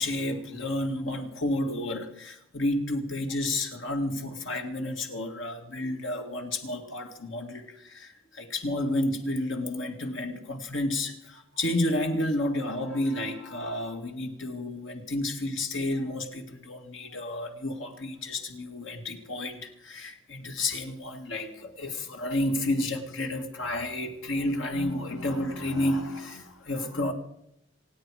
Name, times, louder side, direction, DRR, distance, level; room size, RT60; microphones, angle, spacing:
voice 1, 0.0-27.1, left 1 dB, 85° left, 4 dB, 2.2 m, -31 dB
27.0 x 9.1 x 4.9 m, 0.76 s
head